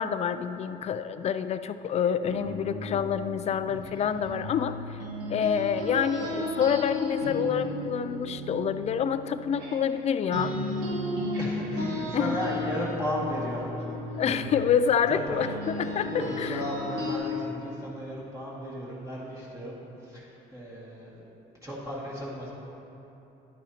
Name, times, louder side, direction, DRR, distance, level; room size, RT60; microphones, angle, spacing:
voice 1, 0.0-5.0 5.3-10.5 12.1-12.4 14.2-16.1 16.4-16.6, left 7 dB, 40° left, 11 dB, 0.4 m, -27 dB
sound 1, 2.2-10.0 10.3-17.2, left 1 dB, 90° right, 1.8 m, -34 dB
voice 2, 3.7-4.0 11.4-13.7 14.2-14.7 15.1-21.2 21.6-22.5, equal, 20° right, -7 dB, 2.0 m, -35 dB
11.5 x 9.0 x 2.9 m, 3.0 s
cardioid pair, 110°, 17 cm